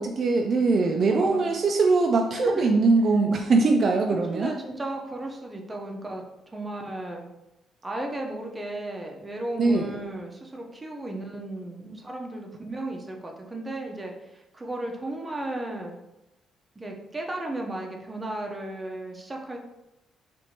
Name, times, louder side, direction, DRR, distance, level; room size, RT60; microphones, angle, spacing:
voice 1, 0.0-4.5 9.6-9.9, right 3 dB, 50° right, 2 dB, 0.3 m, -22 dB
voice 2, 1.1-1.5 2.3-2.6 4.3-6.2 6.5-7.3 7.8-16.0 16.8-19.6, right 1 dB, 20° right, 1 dB, 0.7 m, -35 dB
4.3 x 2.6 x 2.8 m, 0.92 s
cardioid pair, 90°, 0 cm